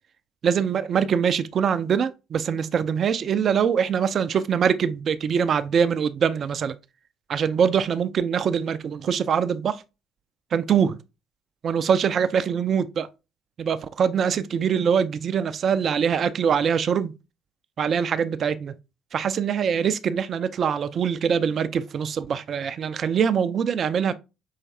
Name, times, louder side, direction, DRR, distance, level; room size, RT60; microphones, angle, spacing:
voice 1, 0.4-6.8 7.3-9.8 10.5-11.0 11.6-13.1 13.6-17.1 17.8-18.8 19.1-24.1, right 7 dB, 45° right, 0.4 m, -23 dB
5.7 x 3.2 x 2.6 m
figure-of-eight pair, 50°, 0 cm